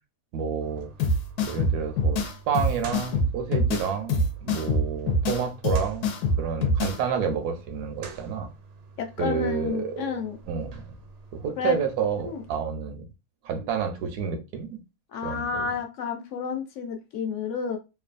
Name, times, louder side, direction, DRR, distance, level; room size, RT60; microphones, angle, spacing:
voice 1, 0.3-0.9 1.4-8.5 9.2-10.2 10.5-10.9 11.3-13.1 13.4-14.8 15.2-15.7, right 6 dB, 85° right, 1.2 m, -30 dB
sound 1, 0.6-12.6, right 4 dB, 65° right, 0.6 m, -47 dB
sound 2, 1.0-7.0, left 1 dB, 90° left, 1.2 m, -25 dB
voice 2, 9.0-10.4 11.6-11.8 12.2-12.4 15.1-17.8, left 6 dB, 65° left, 0.8 m, -30 dB
3.0 x 2.3 x 2.4 m
omnidirectional pair, 1.7 m